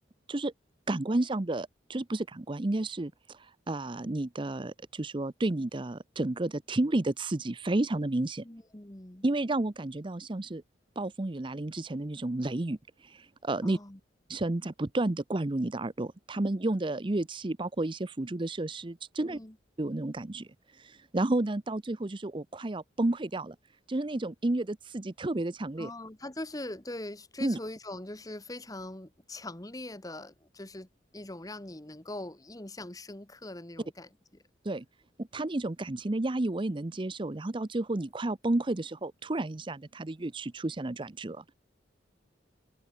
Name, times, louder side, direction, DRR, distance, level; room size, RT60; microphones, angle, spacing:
voice 1, 0.9-8.4 9.2-10.6 11.0-13.8 14.3-19.4 19.8-20.5 20.7-23.6 23.9-25.9 27.4-27.6 34.6-34.8 35.2-41.5, right 2 dB, 25° right, 0.6 m, -31 dB
voice 2, 8.4-9.2 13.6-14.0 19.2-19.6 25.8-34.4, left 1 dB, 20° left, 1.4 m, -42 dB
head